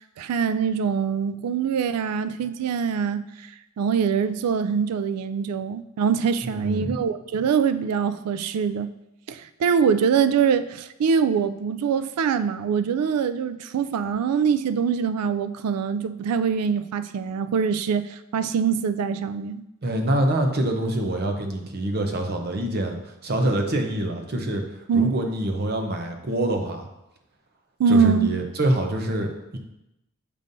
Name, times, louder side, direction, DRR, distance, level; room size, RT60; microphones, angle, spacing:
voice 1, 0.2-3.5 3.8-8.9 9.3-19.6 24.9-25.1 27.8-28.3, right 6 dB, 90° right, 12 dB, 0.3 m, -23 dB
voice 2, 6.4-7.0 19.8-24.6 24.9-26.9 27.9-29.6, right 1 dB, 45° right, 4 dB, 0.7 m, -25 dB
6.7 x 5.3 x 2.6 m, 0.91 s
head